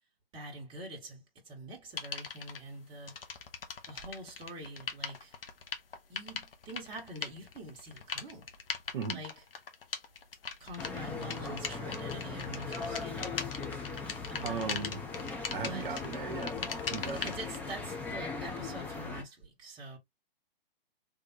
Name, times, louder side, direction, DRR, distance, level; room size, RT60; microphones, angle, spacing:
voice 1, 0.3-3.2 3.9-5.4 6.1-8.5 9.1-9.4 10.6-13.4 14.3-14.9 15.6-16.0 17.1-20.0, right 1 dB, 15° right, 1.5 m, -45 dB
sound 1, 2.0-2.6 3.0-17.6, left 5 dB, 70° left, 1.2 m, -40 dB
sound 2, 10.8-19.2, left 4 dB, 5° left, 0.6 m, -39 dB
voice 2, 14.4-15.0 15.5-16.6 16.9-17.2, right 5 dB, 60° right, 1.0 m, -37 dB
3.4 x 3.4 x 2.8 m
figure-of-eight pair, 125°, 30 cm